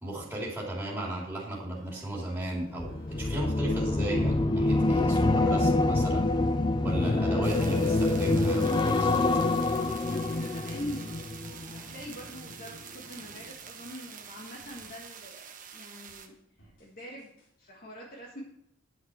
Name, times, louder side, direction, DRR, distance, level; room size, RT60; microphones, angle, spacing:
voice 1, 0.0-6.3 6.8-9.2, right 1 dB, 10° right, -4 dB, 3.1 m, -35 dB
sound 1, 1.7-14.3 14.6-15.3 15.6-17.5, equal, 85° left, 3.0 m, -55 dB
sound 2, 2.7-12.1 12.4-12.8, left 2 dB, 25° left, 0.4 m, -26 dB
sound 3, 7.4-16.3, right 7 dB, 45° right, 1.2 m, -46 dB
voice 2, 9.8-16.3 16.6-17.3 17.6-18.4, left 1 dB, 50° left, -2 dB, 1.7 m, -44 dB
10.5 x 6.5 x 5.9 m, 0.74 s
head